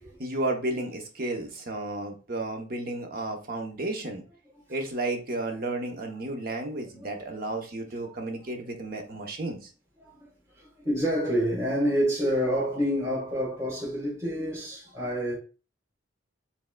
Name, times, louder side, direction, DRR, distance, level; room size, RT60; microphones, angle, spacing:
voice 1, 0.2-4.2 4.7-9.7, right 2 dB, 50° right, 0.8 m, -32 dB
voice 2, 6.7-7.3 8.2-8.3 10.0-15.3, equal, 15° right, 1.5 m, -28 dB
4.5 x 3.6 x 2.2 m
head